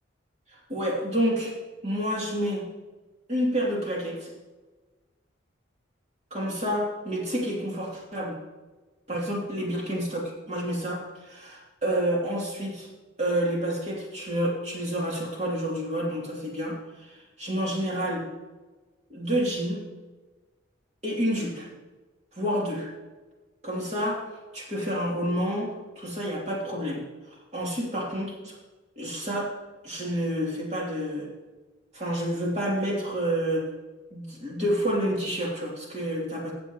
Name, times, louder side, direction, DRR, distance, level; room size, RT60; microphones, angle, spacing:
voice 1, 0.5-1.5 1.8-2.7 3.3-4.3 6.3-8.4 9.1-12.9 13.2-18.3 19.1-19.9 21.0-21.7 22.3-22.9 23.6-27.0 27.5-28.6 29.0-29.5 29.8-31.3 31.9-33.7 34.1-36.5, equal, 35° right, -3 dB, 3.0 m, -29 dB
16.5 x 7.5 x 3.1 m, 1.2 s
head